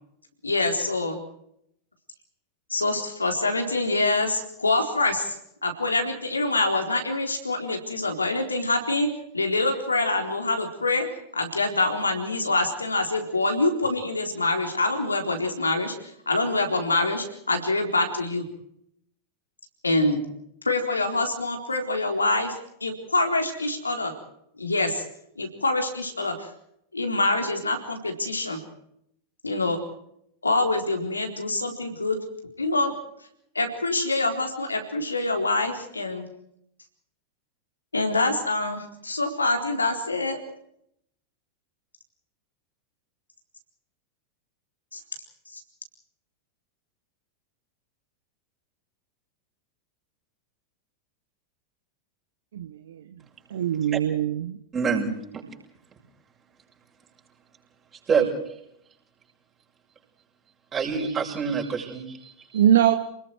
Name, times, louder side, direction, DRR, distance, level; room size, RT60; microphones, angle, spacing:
voice 1, 0.4-1.2 2.7-5.4 5.6-11.1 11.3-15.9 16.3-18.5 19.8-20.2 20.6-22.5 22.8-24.1 24.6-25.0 25.4-26.5 26.9-28.6 29.4-29.8 30.4-32.2 32.6-32.9 33.5-36.3 37.9-40.4 44.9-45.0 45.5-45.6, left 2 dB, 80° left, 4 dB, 4.1 m, -25 dB
voice 2, 52.5-53.0 53.5-54.6 62.5-62.9, right 11 dB, 60° right, 8 dB, 1.2 m, -22 dB
voice 3, 54.7-55.4 58.1-58.6 60.7-62.6, right 5 dB, 25° right, 0 dB, 7.0 m, -27 dB
30.0 x 20.5 x 4.8 m, 0.73 s
figure-of-eight pair, 90°, 0 cm